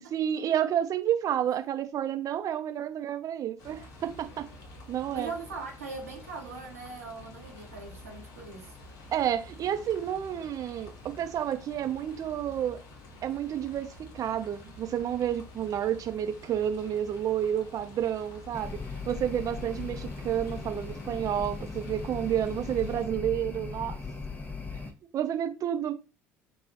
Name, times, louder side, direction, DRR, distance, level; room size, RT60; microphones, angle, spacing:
voice 1, 0.1-4.5 4.9-5.3 9.1-12.8 13.2-13.9 14.1-18.8 19.1-24.0 25.1-25.9, right 10 dB, 50° right, 0.6 m, -30 dB
sound 1, 3.6-23.1, left 1 dB, 60° left, 1.0 m, -49 dB
voice 2, 5.1-8.8, right 4 dB, 90° right, 0.9 m, -40 dB
sound 2, 18.5-24.9, left 4 dB, 20° left, 0.8 m, -38 dB
3.2 x 2.3 x 4.0 m
hypercardioid pair, 60°, 8 cm